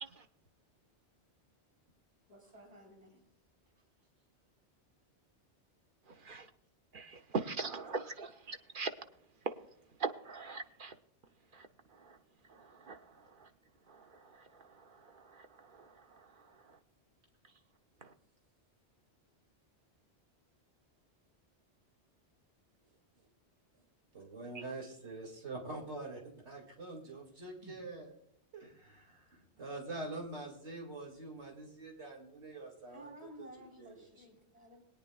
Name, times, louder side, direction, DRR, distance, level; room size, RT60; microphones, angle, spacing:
voice 1, 2.3-3.1 27.6-27.8 32.9-34.8, equal, 30° right, 0 dB, 4.0 m, -54 dB
voice 2, 6.9-8.9 9.5-9.6 10.0-10.9 12.9-13.0, right 4 dB, 55° right, 7 dB, 0.9 m, -38 dB
voice 3, 24.1-28.1 28.5-34.3, right 2 dB, 80° right, 0 dB, 2.6 m, -45 dB
20.5 x 9.8 x 2.3 m, 0.71 s
omnidirectional pair, 1.2 m